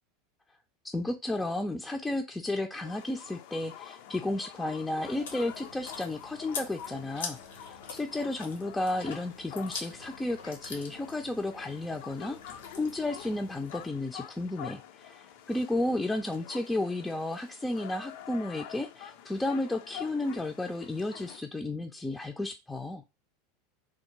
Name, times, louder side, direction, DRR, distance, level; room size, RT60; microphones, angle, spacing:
voice 1, 0.8-23.0, left 2 dB, 10° left, 2 dB, 0.4 m, -33 dB
sound 1, 2.8-21.4, left 10 dB, 65° left, 0.4 m, -47 dB
Chewing mastication, 5.0-13.9, left 4 dB, 85° left, 0.9 m, -45 dB
3.4 x 2.2 x 3.0 m, 0.24 s
hypercardioid pair, 95°, 0 cm